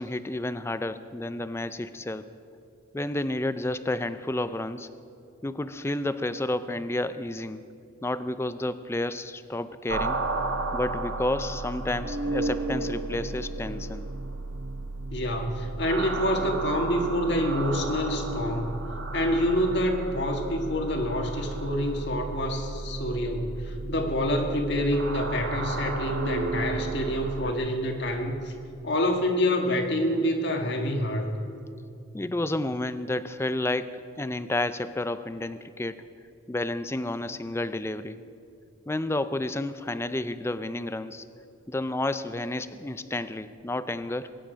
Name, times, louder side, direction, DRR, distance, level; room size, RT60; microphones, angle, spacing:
voice 1, 0.0-2.3 2.9-4.9 5.4-7.6 8.0-10.3 10.7-14.1 32.1-36.0 36.5-38.2 38.9-41.2 41.7-44.4, left 1 dB, 10° left, 13 dB, 0.4 m, -31 dB
sound 1, 9.9-27.5, right 2 dB, 60° right, 1.2 m, -33 dB
voice 2, 15.1-18.8 19.1-28.5 28.8-31.3, equal, 55° left, 3 dB, 1.6 m, -27 dB
22.5 x 10.0 x 5.1 m, 2.5 s
head